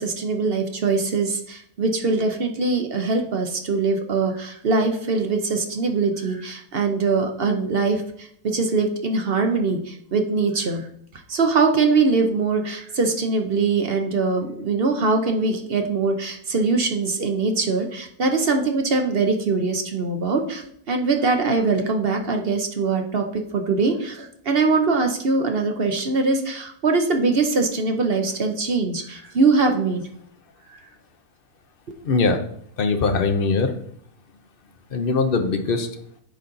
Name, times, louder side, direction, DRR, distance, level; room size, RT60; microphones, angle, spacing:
voice 1, 0.0-10.9 11.3-30.0 30.7-30.8, right 4 dB, 45° right, 4 dB, 0.9 m, -22 dB
voice 2, 32.0-32.4 32.8-33.7 34.9-35.9, left 4 dB, 45° left, 6 dB, 0.8 m, -21 dB
10.0 x 4.2 x 3.9 m, 0.67 s
omnidirectional pair, 1.7 m